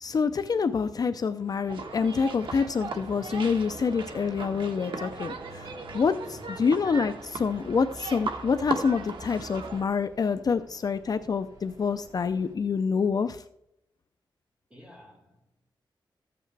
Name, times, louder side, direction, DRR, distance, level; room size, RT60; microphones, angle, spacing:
voice 1, 0.0-13.4, left 5 dB, 50° left, 10 dB, 0.4 m, -27 dB
sound 1, 1.4-12.5, right 1 dB, 45° right, 4.9 m, -55 dB
sound 2, 1.7-9.8, right 4 dB, 75° right, 1.3 m, -37 dB
voice 2, 6.3-6.8 14.7-15.7, left 1 dB, 15° right, -4 dB, 5.1 m, -52 dB
14.0 x 8.7 x 3.3 m, 0.77 s
wide cardioid pair, 135°, 9 cm